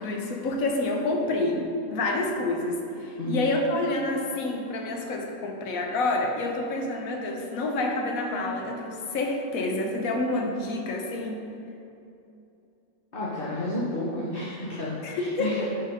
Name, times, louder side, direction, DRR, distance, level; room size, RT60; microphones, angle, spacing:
voice 1, 0.0-11.4 15.0-15.7, left 2 dB, 80° left, 2 dB, 1.2 m, -28 dB
voice 2, 3.2-3.5 13.1-15.7, left 1 dB, 45° left, -7 dB, 1.1 m, -31 dB
6.2 x 4.5 x 5.0 m, 2.7 s
omnidirectional pair, 1.4 m